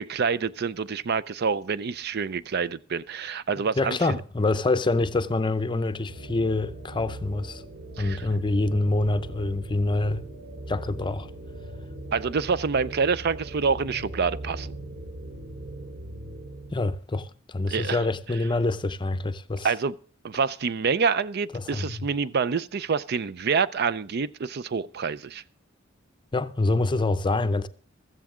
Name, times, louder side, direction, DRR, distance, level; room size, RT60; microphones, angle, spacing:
voice 1, 0.0-4.2 8.0-8.2 12.1-14.7 17.7-18.0 19.6-19.9 20.2-25.4, right 5 dB, 55° right, 0.5 m, -27 dB
voice 2, 3.6-7.6 8.0-10.2 10.7-11.3 16.7-19.7 21.5-22.1 26.3-27.7, left 2 dB, 25° left, 0.6 m, -26 dB
sound 1, 6.1-16.7, right 1 dB, 75° right, 4.0 m, -39 dB
15.0 x 14.0 x 3.7 m
head